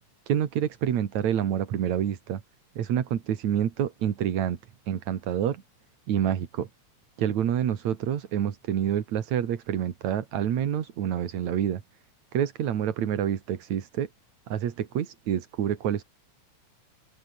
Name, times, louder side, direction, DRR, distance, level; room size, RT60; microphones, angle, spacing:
voice 1, 0.3-2.4 2.8-4.6 4.9-5.6 6.1-6.7 7.2-11.8 12.3-14.1 14.5-16.0, right 9 dB, 70° right, 3.1 m, -27 dB
open air
omnidirectional pair, 3.4 m